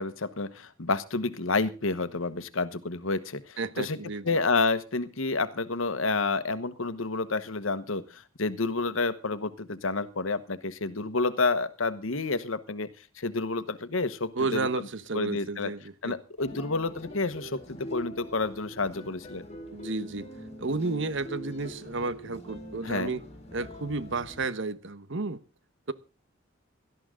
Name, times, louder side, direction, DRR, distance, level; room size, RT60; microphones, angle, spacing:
voice 1, 0.0-4.0 4.2-12.9 13.2-14.9 15.1-15.7 16.0-19.4 22.8-23.2, left 3 dB, 85° left, 1.2 m, -29 dB
voice 2, 3.6-4.3 14.4-16.2 19.7-20.3 20.6-23.2 23.5-25.4, right 3 dB, 65° right, 1.1 m, -32 dB
sound 1, 16.4-24.5, equal, 35° left, 4.0 m, -43 dB
18.0 x 13.0 x 3.8 m
head